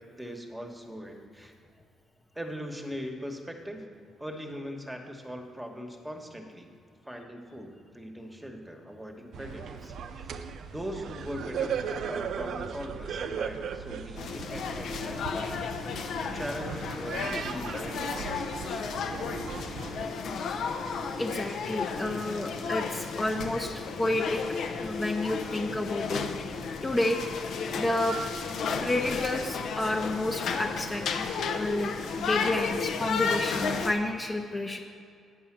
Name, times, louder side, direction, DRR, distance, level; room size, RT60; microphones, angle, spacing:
voice 1, 0.1-1.5 2.3-3.8 4.2-6.7 7.0-9.9 10.2-10.4 10.7-15.6 16.3-19.1, equal, 5° right, 3 dB, 1.2 m, -40 dB
sound 1, 9.3-20.1, right 7 dB, 70° right, 0.5 m, -37 dB
sound 2, 14.2-33.9, left 5 dB, 70° left, 0.7 m, -33 dB
voice 2, 21.2-23.7 24.0-24.4 24.8-26.2 26.8-27.2 27.8-28.2 28.8-34.8, left 1 dB, 20° left, 1 dB, 0.7 m, -30 dB
9.3 x 5.5 x 7.2 m, 2.4 s
cardioid pair, 90°, 0 cm